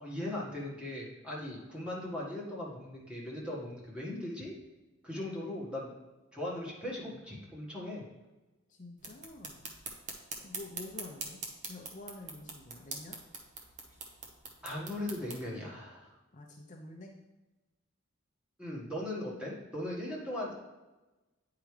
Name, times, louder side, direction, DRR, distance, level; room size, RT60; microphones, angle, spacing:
voice 1, 0.0-4.5 5.0-5.9 6.3-8.0 14.6-16.1 18.6-20.5, left 1 dB, 5° right, -5 dB, 1.5 m, -38 dB
voice 2, 8.7-9.6 10.4-13.2 16.3-17.2, left 2 dB, 35° left, 0 dB, 0.6 m, -48 dB
sound 1, 9.0-15.4, right 4 dB, 35° right, 0.9 m, -44 dB
9.1 x 4.8 x 3.2 m, 1.1 s
head